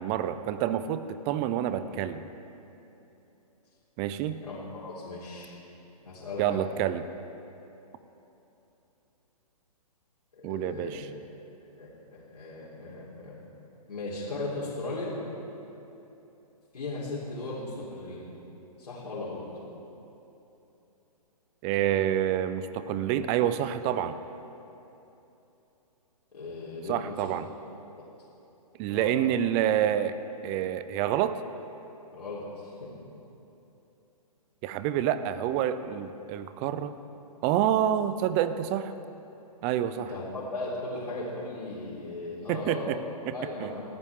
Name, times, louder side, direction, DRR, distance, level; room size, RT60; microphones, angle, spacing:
voice 1, 0.0-2.2 4.0-4.4 6.4-7.1 10.4-11.1 21.6-24.2 26.9-27.5 28.8-30.2 30.4-31.4 34.6-36.9 37.4-38.9 39.6-40.1 42.5-43.0 43.3-43.7, right 11 dB, 15° right, 12 dB, 0.3 m, -28 dB
voice 2, 4.4-5.5 6.0-6.6 10.4-11.0 11.8-13.4 13.9-15.2 16.7-18.2 18.8-19.5 26.3-27.3 28.9-29.3 32.1-32.7 39.9-42.9 43.3-43.8, left 2 dB, 85° left, -8 dB, 4.0 m, -37 dB
19.5 x 14.5 x 3.6 m, 2.9 s
hypercardioid pair, 150°, 20 cm